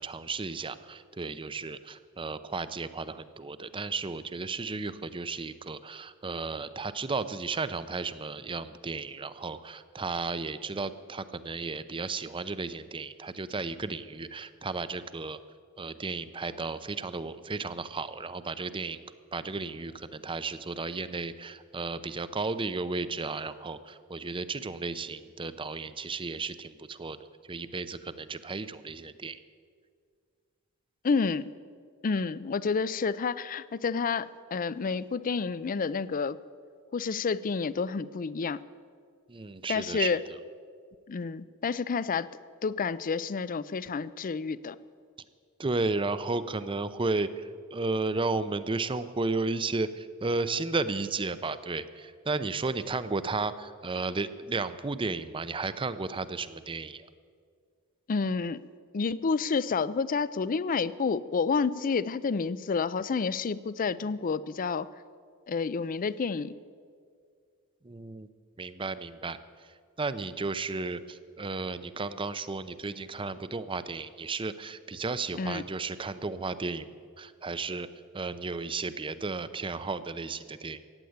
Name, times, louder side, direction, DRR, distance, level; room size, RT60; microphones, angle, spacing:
voice 1, 0.0-15.4 15.8-19.0 19.3-27.2 27.5-29.4 39.3-40.2 45.6-57.1 67.8-68.3 68.6-69.4 70.0-77.9 78.1-80.8, right 3 dB, 25° right, 14 dB, 0.6 m, -34 dB
voice 2, 31.0-31.5 32.0-36.4 36.9-38.6 39.7-40.2 41.1-42.3 42.6-44.8 58.1-58.6 58.9-64.9 65.5-66.5 75.4-75.6, left 5 dB, 40° left, 17 dB, 0.4 m, -29 dB
15.0 x 9.2 x 9.4 m, 2.1 s
head